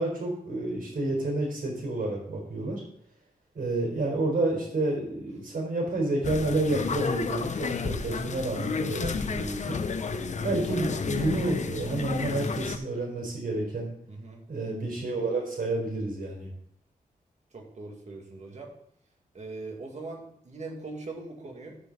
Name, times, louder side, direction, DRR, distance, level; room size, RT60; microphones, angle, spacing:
voice 1, 0.0-2.8 3.5-9.8 10.4-13.9 14.5-16.5, right 2 dB, 75° right, 0 dB, 4.2 m, -29 dB
sound 1, 6.2-12.8, left 5 dB, 50° left, 0.7 m, -31 dB
voice 2, 14.1-14.4 17.5-18.7 19.3-21.8, right 3 dB, 50° right, 1 dB, 2.1 m, -41 dB
13.5 x 5.2 x 3.9 m, 0.67 s
wide cardioid pair, 125°, 15 cm